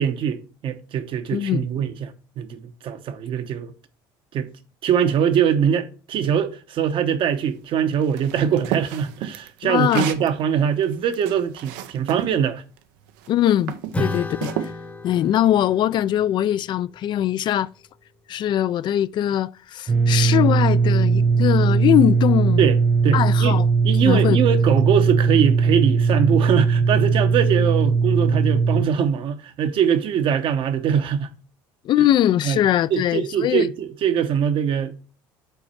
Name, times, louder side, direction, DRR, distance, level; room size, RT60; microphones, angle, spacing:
voice 1, 0.0-3.7 4.3-4.5 4.8-12.6 14.0-14.1 22.6-22.8 23.0-23.6 23.8-31.3 32.4-32.6 32.9-34.9, right 8 dB, 55° right, 0.9 m, -22 dB
voice 2, 1.3-1.7 9.6-10.1 13.3-14.7 15.0-17.7 18.3-22.6 23.1-23.7 24.0-24.4 31.8-33.7, left 11 dB, 50° left, 0.3 m, -21 dB
sound 1, 8.2-10.3 10.8-12.3 13.1-13.3 13.7-14.7, right 11 dB, 85° right, 0.6 m, -31 dB
Acoustic guitar / Strum, 13.9-18.7, left 2 dB, 15° left, 0.9 m, -35 dB
sound 2, 19.9-28.8, right 4 dB, 20° right, 0.4 m, -19 dB
5.8 x 4.1 x 5.4 m
supercardioid pair, 85°, 10 cm